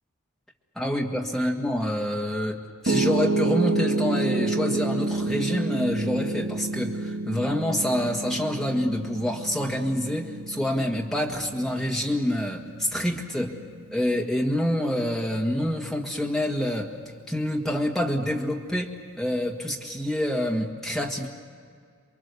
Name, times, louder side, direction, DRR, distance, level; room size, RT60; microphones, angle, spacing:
voice 1, 0.8-13.5 13.9-16.9 17.3-21.3, left 1 dB, ahead, -1 dB, 1.8 m, -27 dB
Piano, 2.9-15.0, right 2 dB, 60° right, 1.2 m, -29 dB
28.5 x 22.5 x 6.9 m, 2.1 s
head